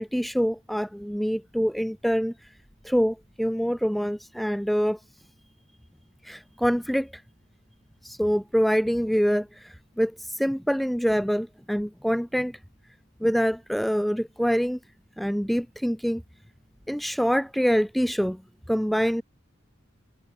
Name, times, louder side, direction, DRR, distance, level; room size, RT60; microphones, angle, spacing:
voice 1, 0.0-2.3 2.8-5.0 6.2-7.2 8.0-12.6 13.2-14.8 15.2-16.2 16.9-18.4 18.7-19.2, equal, ahead, 0.4 m, -25 dB
head